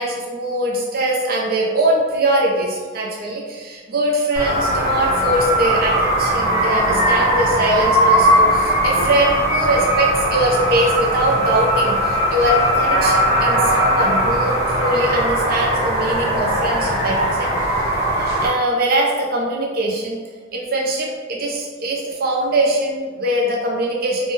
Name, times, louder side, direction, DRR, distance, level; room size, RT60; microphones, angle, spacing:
voice 1, 0.0-17.5 18.1-20.2 20.5-24.3, right 1 dB, 50° right, -2 dB, 0.5 m, -22 dB
sound 1, 4.4-18.5, equal, 15° right, 0.9 m, -19 dB
2.6 x 2.2 x 3.0 m, 1.5 s
head